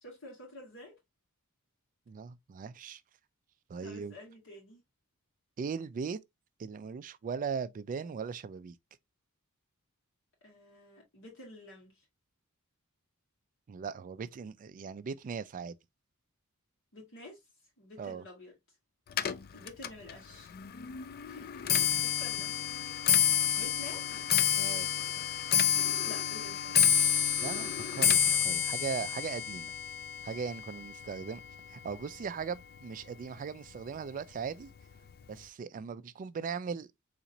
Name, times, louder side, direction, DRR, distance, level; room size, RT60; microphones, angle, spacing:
voice 1, 0.0-0.9 3.8-4.8 10.4-12.0 16.9-17.4 17.8-18.5 19.5-20.5 21.2-22.5 23.6-24.3 26.0-27.2, left 1 dB, 60° left, 1.5 m, -50 dB
voice 2, 2.1-3.0 3.7-4.2 5.6-6.2 6.6-8.8 13.7-15.7 18.0-18.2 21.9-22.0 24.6-24.9 27.4-29.7 30.2-31.4 31.7-34.7 35.3-36.9, right 6 dB, 35° right, 0.3 m, -38 dB
Clock, 19.1-32.4 32.8-33.2 34.0-34.1 34.4-34.8 35.1-35.2, left 8 dB, 45° left, 0.3 m, -29 dB
4.1 x 2.9 x 2.6 m
head